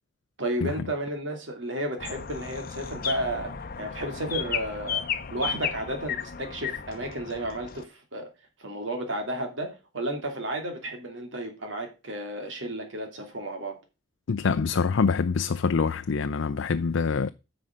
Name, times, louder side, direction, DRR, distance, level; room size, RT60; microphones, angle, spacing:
voice 1, 0.4-3.5 3.8-5.0 5.3-8.3 8.6-13.7, right 1 dB, 85° right, 2.8 m, -32 dB
sound 1, 2.0-7.8, left 8 dB, 50° left, 0.7 m, -34 dB
voice 2, 14.3-17.3, left 5 dB, 85° left, 0.5 m, -25 dB
9.8 x 6.2 x 5.3 m
head